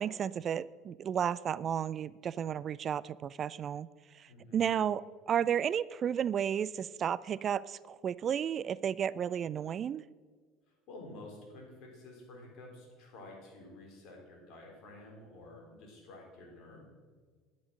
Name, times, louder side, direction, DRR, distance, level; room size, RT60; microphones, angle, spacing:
voice 1, 0.0-3.9 4.1-10.0, right 8 dB, 40° right, 20 dB, 0.3 m, -33 dB
voice 2, 4.3-4.6 10.7-16.9, left 2 dB, 55° left, 0 dB, 4.3 m, -51 dB
10.5 x 9.7 x 6.3 m, 1.5 s
hypercardioid pair, 65°, 0 cm